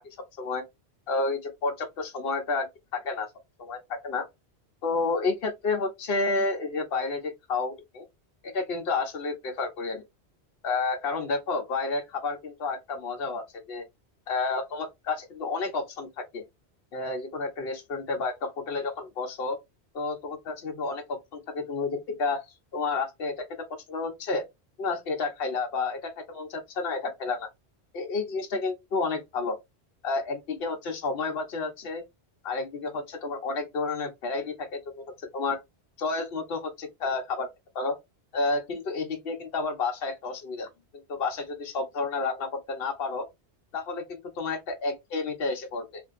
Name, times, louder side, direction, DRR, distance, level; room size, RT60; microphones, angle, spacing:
voice 1, 1.1-2.7 2.9-3.3 3.6-4.3 4.8-8.0 8.4-10.0 10.6-13.8 14.3-16.4 16.9-19.6 19.9-22.5 22.7-23.4 23.9-24.4 24.8-27.5 27.9-29.6 30.0-32.0 32.4-34.8 35.2-35.6 36.0-37.5 37.7-38.0 38.3-40.7 41.1-43.3 43.7-46.0, left 3 dB, 65° left, 1.0 m, -30 dB
3.5 x 2.6 x 2.4 m
omnidirectional pair, 1.1 m